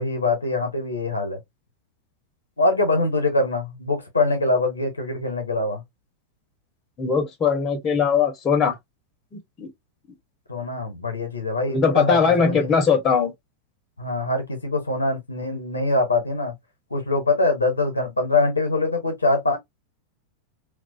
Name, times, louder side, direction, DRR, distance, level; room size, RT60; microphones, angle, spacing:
voice 1, 0.0-1.4 2.6-5.8 10.5-12.8 14.0-16.5 16.9-19.6, left 2 dB, 80° left, 0.8 m, -23 dB
voice 2, 7.0-8.7 9.6-9.7 11.7-13.3, left 6 dB, 30° left, 0.8 m, -20 dB
2.3 x 2.3 x 2.3 m
figure-of-eight pair, 90°, 0 cm